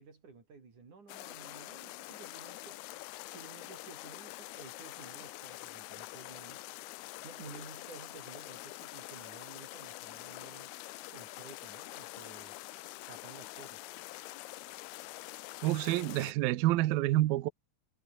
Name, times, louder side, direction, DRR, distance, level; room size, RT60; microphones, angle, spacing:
voice 1, 0.0-2.8 3.3-6.6 7.2-10.7 11.1-12.6 13.1-13.8, right 4 dB, 40° right, 5.8 m, -53 dB
sound 1, 1.1-16.3, left 19 dB, 90° left, 2.3 m, -46 dB
voice 2, 15.6-17.5, right 16 dB, 80° right, 2.2 m, -28 dB
omnidirectional pair, 5.4 m